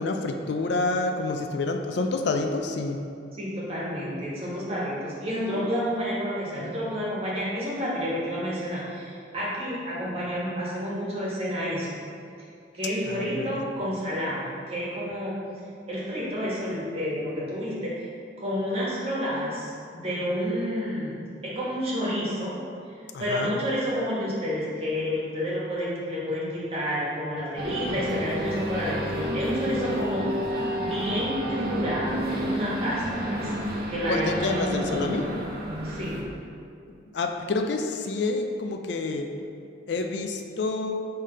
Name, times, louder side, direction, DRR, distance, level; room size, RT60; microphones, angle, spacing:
voice 1, 0.0-3.0 13.0-13.7 23.1-23.6 34.1-35.2 37.1-39.3 39.9-41.0, left 3 dB, 65° left, 4 dB, 0.4 m, -28 dB
voice 2, 3.3-11.9 12.7-15.4 15.9-17.9 18.4-22.5 22.9-30.5 30.8-33.5 33.9-35.1 35.8-36.2, equal, 30° right, -7 dB, 1.4 m, -30 dB
sound 1, 27.6-36.2, equal, 50° right, 0.9 m, -31 dB
5.7 x 3.3 x 5.4 m, 2.5 s
head